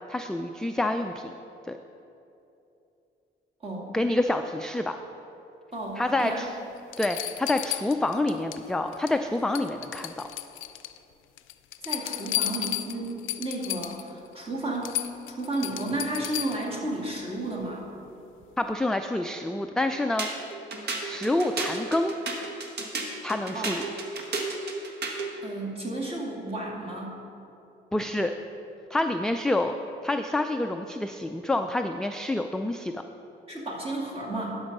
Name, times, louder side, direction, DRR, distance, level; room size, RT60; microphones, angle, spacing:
voice 1, 0.1-1.3 1.7-1.8 3.9-5.0 6.0-6.5 7.0-10.3 18.6-20.3 21.0-22.1 23.2-23.9 27.9-28.3 28.9-29.7 30.0-33.0, left 2 dB, 5° left, 6 dB, 0.3 m, -27 dB
voice 2, 5.7-6.5 11.8-17.9 23.5-23.7 25.4-27.2 33.5-34.6, right 2 dB, 30° right, -3 dB, 2.3 m, -33 dB
sound 1, 6.2-6.3 6.9-8.6 8.9-9.3 9.5-11.0 11.4-14.1 14.5-14.6 14.8-16.7 18.4-18.5, left 14 dB, 85° left, 0.4 m, -33 dB
sound 2, 20.2-25.3, right 3 dB, 55° right, 1.4 m, -33 dB
12.0 x 5.3 x 5.4 m, 2.8 s
cardioid pair, 90°, 20 cm